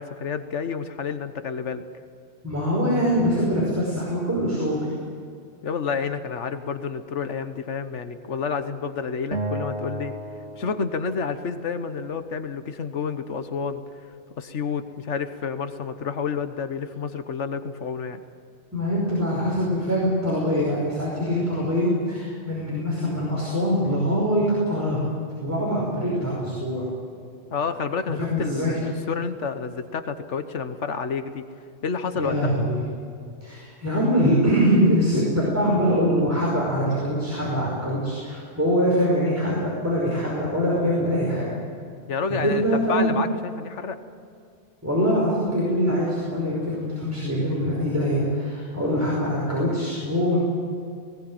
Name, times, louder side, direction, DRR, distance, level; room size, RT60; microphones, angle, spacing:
voice 1, 0.0-1.8 5.6-10.1 10.6-13.8 14.4-18.2 27.5-31.4 31.8-32.4 42.1-44.0, left 5 dB, 85° left, 9 dB, 1.4 m, -29 dB
voice 2, 2.4-4.9 18.7-25.0 25.4-26.9 28.3-28.8 32.1-32.8 33.4-41.5 42.3-43.1 44.8-50.4, equal, 15° right, -5 dB, 5.3 m, -23 dB
Acoustic guitar, 9.3-12.6, right 1 dB, 90° right, 2.2 m, -35 dB
20.0 x 18.0 x 9.2 m, 2.3 s
omnidirectional pair, 1.2 m